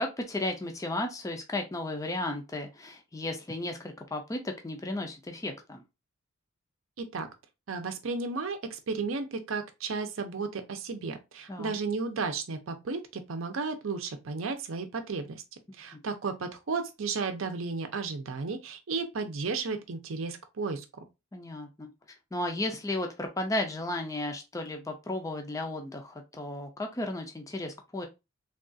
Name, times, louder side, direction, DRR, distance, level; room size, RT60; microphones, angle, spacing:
voice 1, 0.0-5.8 11.5-11.8 15.9-16.0 21.3-21.9 22.3-28.1, left 1 dB, 15° left, 0.4 m, -34 dB
voice 2, 7.0-7.3 7.7-15.4 15.8-20.8, right 4 dB, 70° right, 0.6 m, -33 dB
3.5 x 2.3 x 2.5 m
head